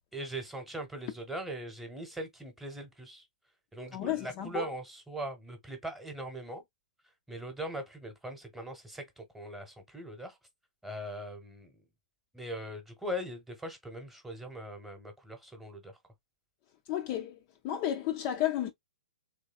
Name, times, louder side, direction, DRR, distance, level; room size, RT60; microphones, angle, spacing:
voice 1, 0.1-3.2 3.7-6.6 7.3-10.4 10.8-11.8 12.3-16.0, right 1 dB, 5° right, 0.9 m, -40 dB
voice 2, 3.9-4.7 16.9-17.4 17.6-18.7, left 11 dB, 30° left, 0.4 m, -32 dB
3.3 x 3.1 x 2.3 m
figure-of-eight pair, 115°, 4 cm